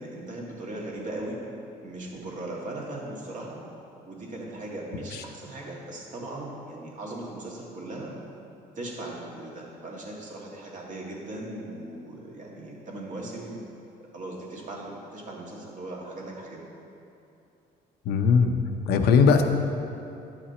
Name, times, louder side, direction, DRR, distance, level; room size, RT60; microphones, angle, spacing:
voice 1, 0.0-1.4 1.8-3.6 4.1-8.1 8.8-13.6 14.1-16.6, right 2 dB, 50° right, -3 dB, 1.8 m, -38 dB
voice 2, 18.1-18.5 18.9-19.4, left 5 dB, 75° left, 6 dB, 0.7 m, -19 dB
10.0 x 5.9 x 4.2 m, 2.8 s
cardioid pair, 110°, 17 cm